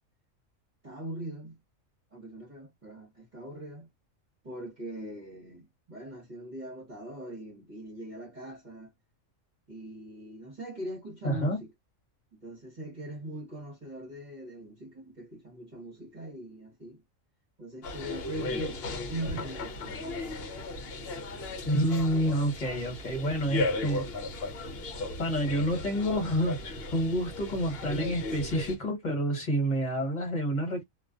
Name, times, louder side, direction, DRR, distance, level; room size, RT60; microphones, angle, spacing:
voice 1, 0.8-1.6 2.1-3.9 4.4-8.9 9.7-11.7 12.4-17.0 17.6-18.8 19.1-20.0, right 1 dB, 35° right, 1.0 m, -41 dB
voice 2, 11.2-11.6 21.6-24.1 25.2-30.8, equal, 35° left, 1.3 m, -28 dB
sound 1, 17.8-28.8, left 2 dB, 55° left, 0.8 m, -36 dB
2.4 x 2.3 x 2.4 m
omnidirectional pair, 1.4 m